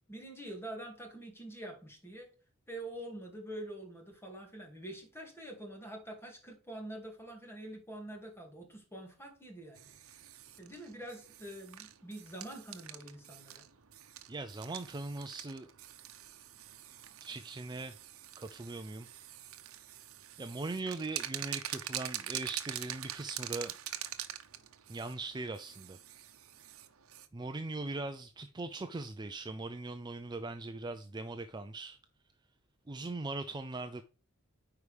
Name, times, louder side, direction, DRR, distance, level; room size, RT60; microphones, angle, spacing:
voice 1, 0.1-2.3 2.7-9.9 10.6-13.6, right 1 dB, 10° left, 2.3 m, -46 dB
sound 1, 9.7-27.3, right 12 dB, 80° right, 0.8 m, -45 dB
voice 2, 14.3-15.7 17.2-18.0 18.4-19.1 20.4-23.7 24.9-26.0 27.3-32.0 32.9-34.0, right 3 dB, 20° right, 0.4 m, -40 dB
9.2 x 4.9 x 3.4 m
head